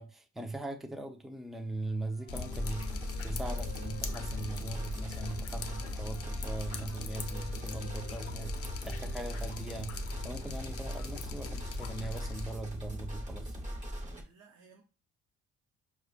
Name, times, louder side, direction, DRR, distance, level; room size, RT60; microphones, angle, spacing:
voice 1, 0.0-13.5, right 2 dB, ahead, 0.5 m, -40 dB
Wind instrument woodwind instrument, 2.0-5.4 5.9-9.7, right 2 dB, 15° left, 1.2 m, -56 dB
Drip, 2.3-12.5, left 5 dB, 50° left, 0.6 m, -41 dB
sound 1, 2.3-14.2, equal, 25° right, 1.3 m, -39 dB
voice 2, 9.1-9.5 14.2-14.8, right 5 dB, 70° right, 0.8 m, -59 dB
4.8 x 2.2 x 2.4 m
cardioid pair, 90°, 30 cm